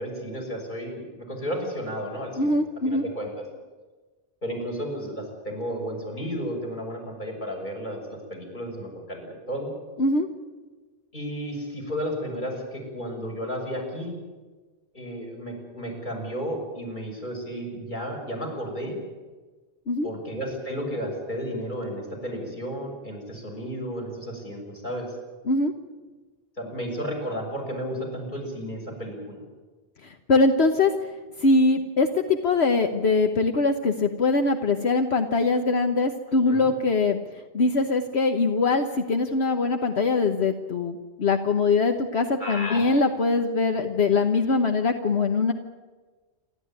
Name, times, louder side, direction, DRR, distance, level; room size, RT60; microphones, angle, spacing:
voice 1, 0.0-2.6 2.9-3.5 4.4-9.7 11.1-14.2 14.9-19.0 20.0-25.1 26.6-29.4 36.5-36.7 42.4-42.8, equal, 40° left, 0 dB, 6.9 m, -33 dB
voice 2, 2.4-3.0 10.0-10.3 19.9-20.1 25.5-25.7 30.0-30.9 31.4-37.2 37.5-45.5, left 3 dB, 65° left, 5 dB, 1.4 m, -22 dB
28.0 x 13.0 x 9.6 m, 1.3 s
omnidirectional pair, 1.2 m